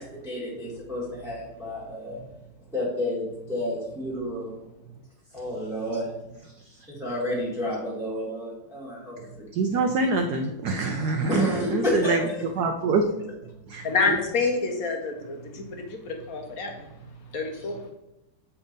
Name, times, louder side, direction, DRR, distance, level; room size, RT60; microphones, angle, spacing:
voice 1, 0.0-2.2 2.7-4.5 5.3-6.1 6.9-9.5 11.3-12.4 17.5-17.7, left 1 dB, ahead, -6 dB, 1.4 m, -30 dB
voice 2, 9.5-12.3 12.6-13.0 13.7-13.9, right 3 dB, 75° right, 5 dB, 0.9 m, -25 dB
voice 3, 13.8-16.9 17.3-17.8, left 4 dB, 55° left, 2 dB, 1.1 m, -28 dB
6.9 x 3.5 x 5.2 m, 0.92 s
omnidirectional pair, 2.3 m